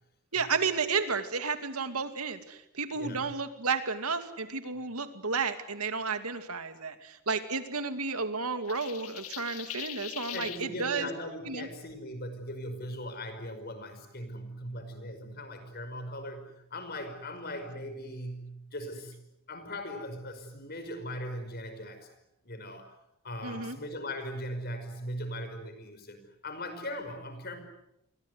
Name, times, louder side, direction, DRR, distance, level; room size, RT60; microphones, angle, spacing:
voice 1, 0.3-11.1 11.5-11.7 23.4-23.8, right 4 dB, 85° right, 9 dB, 2.4 m, -32 dB
voice 2, 2.9-3.3 10.3-19.1 19.5-22.1 22.4-23.0 23.2-27.6, equal, 45° left, 8 dB, 5.5 m, -39 dB
sound 1, 8.7-10.6, left 12 dB, 85° left, 1.7 m, -41 dB
29.0 x 23.0 x 8.1 m, 0.82 s
head